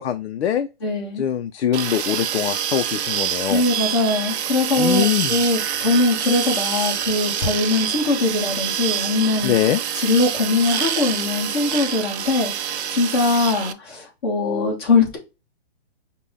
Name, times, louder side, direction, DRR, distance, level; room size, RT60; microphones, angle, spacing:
voice 1, 0.0-0.7 1.2-3.7 4.8-5.3 9.4-9.8, left 10 dB, 85° left, 0.5 m, -22 dB
voice 2, 0.8-1.2 3.5-9.5 10.0-15.2, left 3 dB, 25° left, 1.1 m, -21 dB
sound 1, 1.7-13.7, right 9 dB, 85° right, 0.6 m, -26 dB
5.2 x 2.2 x 3.5 m
hypercardioid pair, 175°, 32 cm